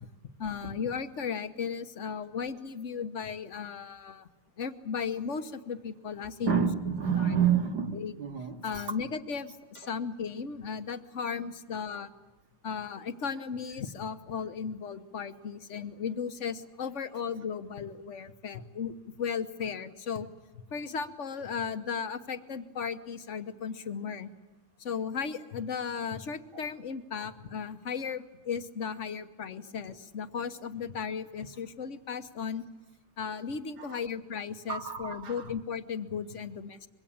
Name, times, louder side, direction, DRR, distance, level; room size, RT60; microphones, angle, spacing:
voice 1, 0.4-4.3 4.6-6.6 7.1-7.6 7.9-8.1 8.6-12.1 12.6-20.3 20.7-24.3 24.8-32.6 33.2-36.9, left 6 dB, 45° left, 9 dB, 1.1 m, -36 dB
voice 2, 6.4-9.0 33.9-34.0 34.7-35.5, right 8 dB, 50° right, 5 dB, 2.2 m, -29 dB
25.0 x 22.5 x 8.7 m, 1.1 s
omnidirectional pair, 2.4 m